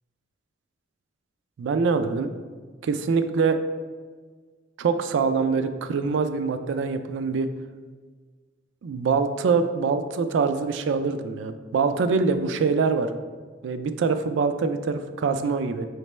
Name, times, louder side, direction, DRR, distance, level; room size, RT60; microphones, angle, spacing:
voice 1, 1.6-2.3 2.8-3.6 4.8-7.5 8.8-13.1 13.6-15.9, right 5 dB, 85° right, 9 dB, 0.3 m, -24 dB
4.9 x 3.3 x 3.1 m, 1.5 s
head